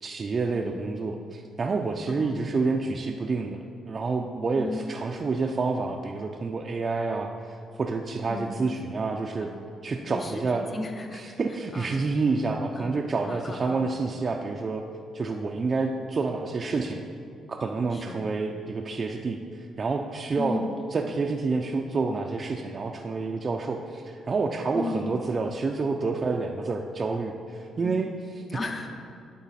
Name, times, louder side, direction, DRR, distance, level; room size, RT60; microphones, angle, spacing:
voice 1, 0.0-9.5 9.8-10.7 11.1-14.8 15.1-17.0 17.5-20.6 20.9-28.4, right 4 dB, 40° right, 2 dB, 0.4 m, -28 dB
voice 2, 0.5-0.9 2.1-2.5 4.6-4.8 8.3-8.6 9.4-9.6 10.1-11.4 11.7-12.0 12.8-13.0 13.3-13.8 17.9-18.3 20.3-20.8 24.7-25.2 27.8-27.9 28.5-29.0, left 2 dB, 30° left, 5 dB, 0.6 m, -35 dB
11.0 x 3.9 x 4.1 m, 2.5 s
cardioid pair, 90°, 0 cm